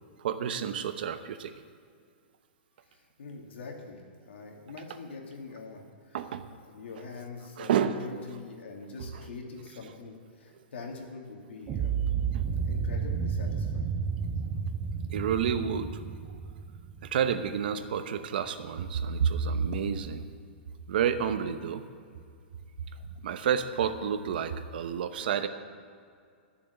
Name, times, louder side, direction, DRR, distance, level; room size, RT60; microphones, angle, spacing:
voice 1, 0.2-1.5 6.1-6.4 7.6-8.1 12.3-12.4 15.1-16.0 17.0-20.3 20.9-21.8 23.2-25.5, right 7 dB, 55° right, 9 dB, 0.9 m, -29 dB
voice 2, 2.9-6.2 6.6-12.0 12.7-13.9, left 4 dB, 85° left, 1 dB, 2.7 m, -44 dB
sound 1, 11.7-17.7, right 6 dB, 15° right, 0.5 m, -31 dB
12.5 x 7.1 x 9.7 m, 2.3 s
hypercardioid pair, 170°, 6 cm